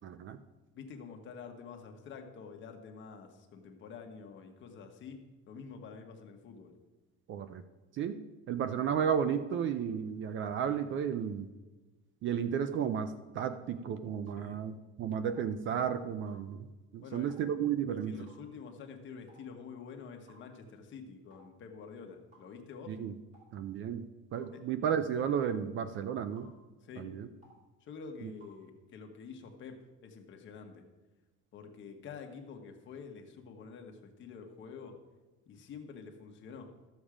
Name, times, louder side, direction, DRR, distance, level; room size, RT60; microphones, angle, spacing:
voice 1, 0.0-0.4 7.3-7.6 7.9-8.2 8.5-11.5 12.2-16.7 16.9-18.3 22.9-23.1 23.5-24.0 24.3-26.5 27.0-27.3 28.2-28.3, right 8 dB, 40° right, 11 dB, 0.5 m, -33 dB
voice 2, 0.7-5.2 5.5-6.7 14.4-14.6 17.0-17.4 17.9-22.9 24.5-24.6 26.8-27.1 27.8-30.8 31.5-34.9 35.5-36.9, left 5 dB, 35° left, 3 dB, 1.3 m, -48 dB
sound 1, 14.3-14.4 15.3-15.5 16.3-16.4 17.3-17.5 18.3-18.5 19.3-19.5 20.3-20.4 21.3-21.5 22.3-22.5 23.3-23.5 24.3-24.5 25.4-25.6 26.4-26.6 27.4-27.6 28.4-28.6, right 1 dB, 20° right, 3.3 m, -60 dB
13.0 x 7.2 x 4.9 m, 1.2 s
cardioid pair, 170°, 32 cm